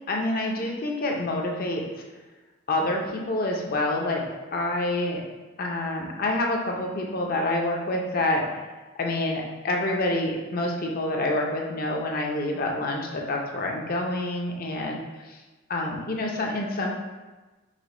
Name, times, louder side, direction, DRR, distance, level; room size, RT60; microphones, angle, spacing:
voice 1, 0.1-1.8 2.7-4.2 4.5-5.2 5.6-8.5 9.0-15.4 15.7-16.9, left 1 dB, 45° left, 0 dB, 0.6 m, -27 dB
4.9 x 2.2 x 3.7 m, 1.2 s
head